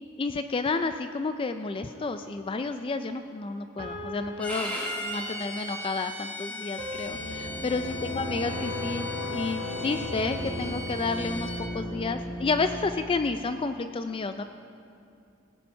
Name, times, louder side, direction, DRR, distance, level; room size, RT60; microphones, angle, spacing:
voice 1, 0.2-14.4, left 3 dB, 25° left, 8 dB, 0.3 m, -31 dB
sound 1, 1.9-2.6 3.8-5.6 6.8-9.2, left 1 dB, 30° right, 2.6 m, -42 dB
Bowed string instrument, 4.4-11.6, left 1 dB, 5° left, 1.6 m, -38 dB
sound 2, 7.0-13.0, left 1 dB, 70° left, 2.7 m, -35 dB
18.0 x 8.2 x 5.5 m, 2.6 s
head